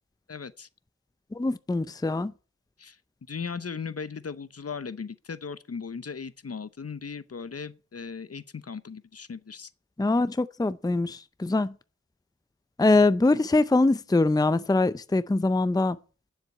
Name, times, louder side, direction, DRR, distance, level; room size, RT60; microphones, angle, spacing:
voice 1, 0.3-0.7 2.8-3.0 3.3-9.7, left 5 dB, 55° left, 0.9 m, -37 dB
voice 2, 1.3-2.3 10.0-11.7 12.8-16.0, left 2 dB, 15° left, 0.6 m, -23 dB
9.8 x 7.5 x 9.4 m
wide cardioid pair, 60°, 29 cm